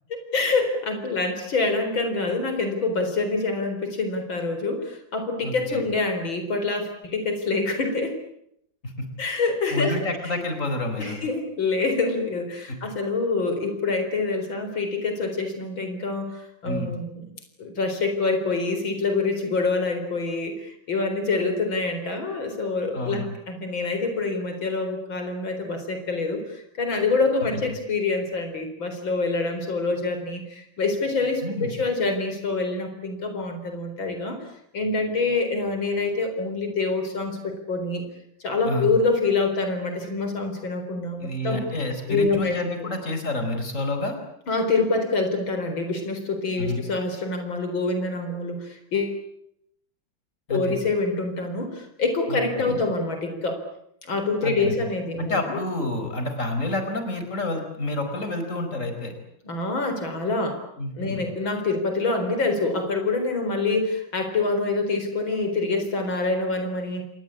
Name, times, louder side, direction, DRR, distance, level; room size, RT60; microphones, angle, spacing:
voice 1, 0.3-8.1 9.2-10.0 10.3-10.4 11.0-17.2 17.6-34.5 34.7-38.0 38.4-41.6 42.1-42.9 44.5-49.2 50.5-53.6 54.1-55.6 59.4-60.6 61.0-67.1, left 3 dB, 90° left, 6 dB, 4.9 m, -26 dB
voice 2, 5.4-5.8 8.8-9.1 9.7-11.2 12.7-12.8 16.6-16.9 22.9-23.3 27.5-27.8 31.4-31.7 38.6-38.9 41.2-44.2 46.6-46.8 50.5-50.8 52.3-52.9 54.4-54.8 55.2-59.1 60.8-61.3, left 2 dB, 40° left, 6 dB, 5.1 m, -29 dB
28.0 x 21.5 x 8.6 m, 0.75 s
omnidirectional pair, 2.1 m